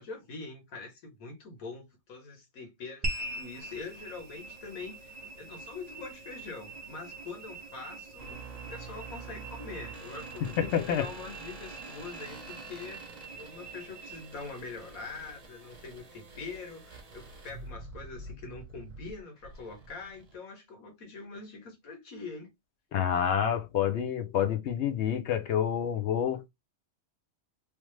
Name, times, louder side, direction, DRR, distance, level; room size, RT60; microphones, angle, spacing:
voice 1, 0.0-8.4 8.7-22.5, left 4 dB, 90° left, 1.5 m, -44 dB
sound 1, 3.0-17.6, right 1 dB, 85° right, 0.3 m, -44 dB
sound 2, 8.2-20.3, right 3 dB, 35° right, 0.8 m, -47 dB
voice 2, 10.6-11.0 22.9-26.5, left 9 dB, 65° left, 0.8 m, -28 dB
3.2 x 2.0 x 3.1 m
omnidirectional pair, 1.4 m